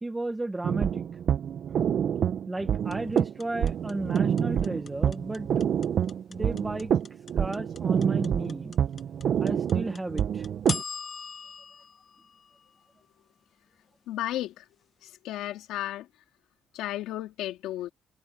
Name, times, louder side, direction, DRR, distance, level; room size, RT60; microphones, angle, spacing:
voice 1, 0.0-1.0 2.5-5.5 6.3-6.9 7.4-8.7 9.4-10.5, right 2 dB, 15° right, 2.0 m, -33 dB
sound 1, 0.6-10.8, right 8 dB, 60° right, 1.5 m, -27 dB
sound 2, 2.9-13.1, left 5 dB, 40° left, 1.6 m, -40 dB
voice 2, 14.1-14.7 15.0-16.1 16.7-17.9, left 14 dB, 85° left, 3.0 m, -33 dB
cardioid pair, 90°, 0 cm